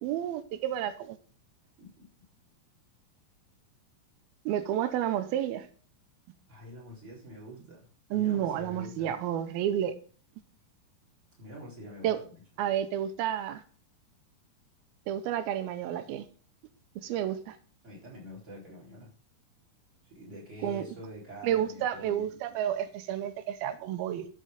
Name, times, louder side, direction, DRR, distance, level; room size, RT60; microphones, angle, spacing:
voice 1, 0.0-1.2 4.5-5.7 8.1-9.9 12.0-12.2 12.6-13.6 15.1-16.3 17.0-17.6 20.6-20.8 21.4-24.3, right 11 dB, 85° right, 10 dB, 2.6 m, -30 dB
voice 2, 6.5-9.1 11.4-12.1 17.8-19.1 20.0-22.3, equal, 20° right, -4 dB, 4.0 m, -46 dB
13.5 x 5.5 x 5.1 m, 0.42 s
omnidirectional pair, 4.3 m